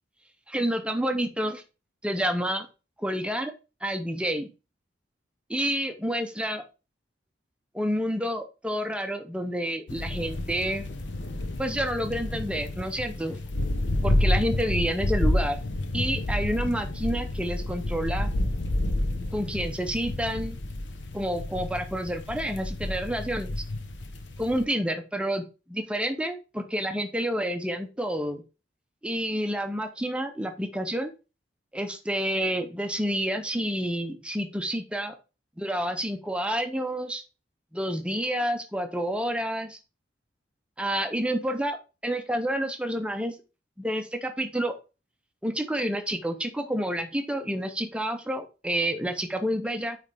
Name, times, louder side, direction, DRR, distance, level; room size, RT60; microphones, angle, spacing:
voice 1, 0.5-1.6 2.0-2.7 3.0-3.5 3.8-4.5 5.5-6.6 7.7-10.9 11.6-13.4 14.0-15.6 15.9-18.3 19.3-20.6 21.1-23.6 24.4-28.4 29.0-31.1 31.7-35.2 35.6-37.2 37.7-39.8 40.8-41.8 42.0-43.4 43.8-44.8 45.4-50.0, equal, 5° right, 7 dB, 0.7 m, -29 dB
sound 1, 9.9-24.6, left 1 dB, 70° left, 0.9 m, -29 dB
9.0 x 3.3 x 3.5 m, 0.31 s
head